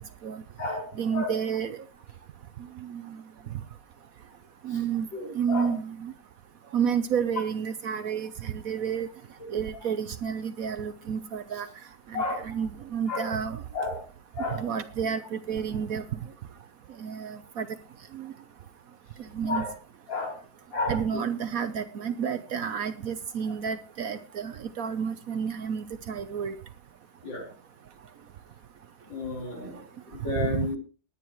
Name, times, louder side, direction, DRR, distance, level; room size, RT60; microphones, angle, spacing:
voice 1, 0.0-0.4 0.9-1.8 2.8-3.2 4.6-6.1 6.7-9.1 9.5-11.7 12.1-13.6 14.5-16.2 17.0-17.7 18.1-18.3 19.2-19.6 20.9-26.5 29.6-29.7 30.3-30.7, right 7 dB, 60° right, 12 dB, 1.0 m, -30 dB
voice 2, 0.6-1.3 4.7-4.8 5.1-5.7 9.4-9.5 12.1-12.4 13.1-13.3 13.7-14.0 14.3-14.6 19.4-19.7 20.1-20.4 20.7-21.2 27.2-27.5 29.1-30.8, left 3 dB, 85° left, 0 dB, 4.5 m, -32 dB
19.5 x 9.5 x 3.1 m, 0.33 s
omnidirectional pair, 2.0 m